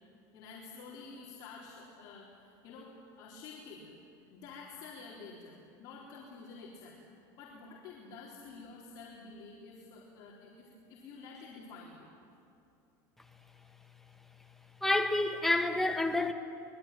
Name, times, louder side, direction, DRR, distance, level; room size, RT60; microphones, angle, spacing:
voice 1, 0.3-2.9 3.2-3.9 4.3-7.0 7.4-12.1, left 4 dB, 45° left, 3.9 m, -49 dB
voice 2, 14.8-16.3, left 2 dB, 5° left, 1.4 m, -28 dB
24.5 x 21.5 x 9.1 m
cardioid pair, 160°, 9 cm